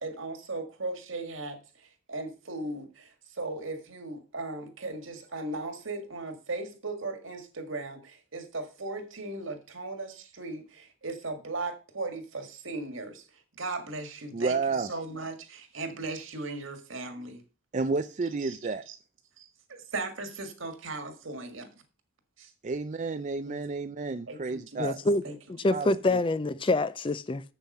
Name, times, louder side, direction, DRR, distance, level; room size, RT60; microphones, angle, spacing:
voice 1, 0.0-13.2 13.6-17.4 18.4-18.6 18.9-19.0 19.4-21.7 22.4-22.5 23.4-23.6 24.3-24.8 25.2-25.3, right 2 dB, 75° right, 1.8 m, -37 dB
voice 2, 14.3-14.9 17.7-18.8 22.6-25.0 25.7-26.2, right 4 dB, 35° right, 0.4 m, -31 dB
voice 3, 24.8-25.2 25.5-27.4, left 2 dB, 25° left, 0.4 m, -26 dB
7.5 x 7.1 x 5.4 m
head